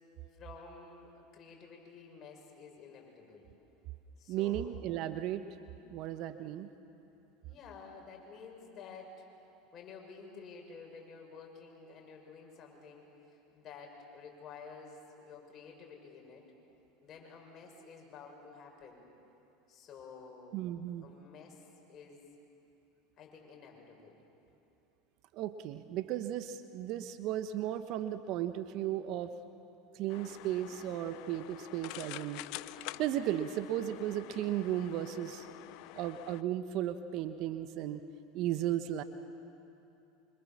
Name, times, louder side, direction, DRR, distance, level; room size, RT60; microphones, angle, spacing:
voice 1, 0.3-3.5 4.2-4.8 7.4-9.2 9.7-16.5 17.0-19.0 19.7-20.6 21.0-22.2 23.2-24.2, left 5 dB, 40° left, 0 dB, 6.9 m, -51 dB
voice 2, 4.3-5.4 5.9-6.7 20.5-21.1 25.3-29.3 29.9-32.4 33.0-35.5 35.9-38.0 38.3-39.0, right 12 dB, 55° right, 10 dB, 1.2 m, -35 dB
sound 1, 30.1-36.4, left 18 dB, 60° left, 0.6 m, -47 dB
25.5 x 25.5 x 7.4 m, 2.8 s
hypercardioid pair, 85°, 0 cm